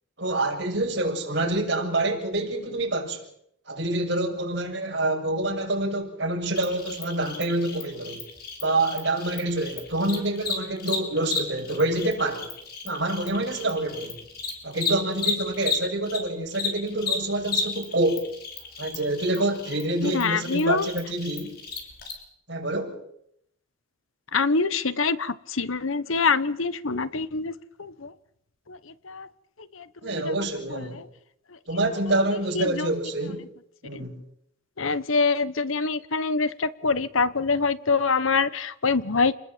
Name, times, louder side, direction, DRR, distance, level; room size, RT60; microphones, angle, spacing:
voice 1, 0.2-3.3 3.7-8.2 8.6-12.5 12.8-14.2 14.6-18.3 18.8-21.6 22.5-23.0 30.0-31.0 31.7-33.4 33.8-34.2, right 2 dB, 55° right, 7.0 m, -27 dB
Cricket, 6.5-16.2 16.5-22.1, left 5 dB, 50° left, 7.0 m, -33 dB
voice 2, 20.0-20.9 24.3-27.5 27.8-28.1 28.7-28.8 29.0-29.3 29.7-30.3 30.7-31.0 32.5-32.9 33.9-34.0 34.8-39.3, left 4 dB, 80° left, 1.2 m, -25 dB
29.5 x 20.5 x 7.6 m
head